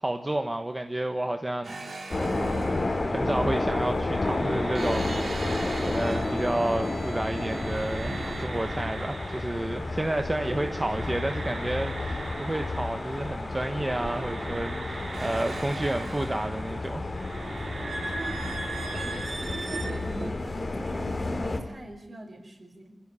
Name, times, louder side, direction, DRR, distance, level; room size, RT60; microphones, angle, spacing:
voice 1, 0.0-2.8 3.1-5.5 5.8-17.1, right 1 dB, 25° right, 6 dB, 1.4 m, -31 dB
sound 1, 1.6-10.3 10.6-20.3, right 2 dB, 70° right, 3.7 m, -38 dB
sound 2, 2.1-21.6, left 2 dB, 45° left, 4.3 m, -31 dB
voice 2, 10.3-10.6 14.9-15.0 18.1-21.1 21.4-22.9, right 1 dB, 50° right, 6 dB, 5.6 m, -44 dB
27.0 x 16.5 x 9.9 m, 0.82 s
wide cardioid pair, 95°, 0 cm